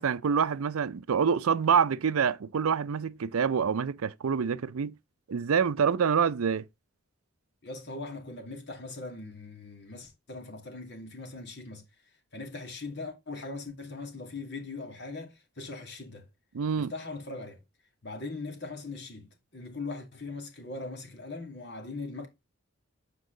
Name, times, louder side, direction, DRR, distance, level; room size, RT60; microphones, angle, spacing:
voice 1, 0.0-4.9 5.3-6.6 16.5-16.9, right 6 dB, 85° right, 0.5 m, -26 dB
voice 2, 7.6-11.8 12.3-16.3 16.8-17.6 18.0-22.3, left 3 dB, 55° left, 2.3 m, -40 dB
8.1 x 4.7 x 3.8 m
head